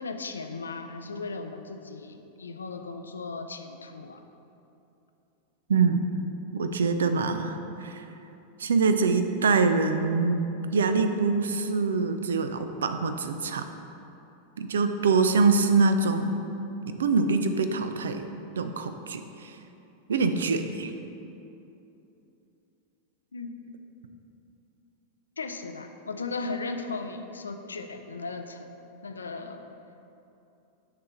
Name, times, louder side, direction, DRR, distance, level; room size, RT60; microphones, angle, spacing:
voice 1, 0.0-4.2 23.3-23.5 25.4-28.7 29.0-29.6, left 3 dB, 75° left, 6 dB, 0.4 m, -36 dB
voice 2, 5.7-6.1 6.5-8.0 8.6-13.6 14.6-16.4 17.0-18.2 18.6-19.5 20.1-20.9, right 4 dB, 65° right, 8 dB, 0.4 m, -24 dB
6.8 x 3.2 x 5.8 m, 2.8 s
figure-of-eight pair, 90°, 0 cm